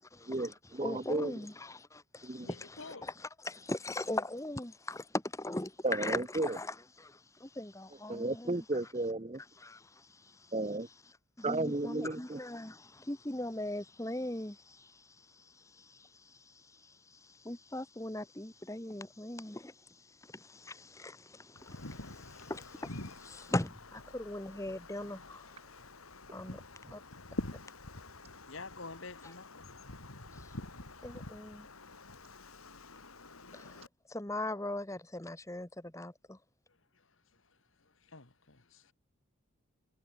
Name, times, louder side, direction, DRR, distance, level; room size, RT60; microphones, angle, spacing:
voice 1, 0.3-1.3 2.2-2.5 5.8-6.6 8.1-9.4 10.5-10.9 11.4-12.4, right 2 dB, 30° right, 0.8 m, -33 dB
voice 2, 0.8-3.1 3.4-8.6 9.6-10.1 11.4-14.9 15.8-16.1 17.4-19.7 20.3-25.4 26.3-26.6 26.9-27.0 31.0-31.7 33.5-33.7 34.1-36.4, left 1 dB, 15° left, 1.1 m, -40 dB
voice 3, 2.4-3.1 28.5-30.3 32.5-32.6 32.9-33.0 33.3-33.4 36.9-38.9, left 3 dB, 65° left, 2.2 m, -50 dB
Wind, 21.5-33.9, left 2 dB, 85° left, 3.7 m, -47 dB
head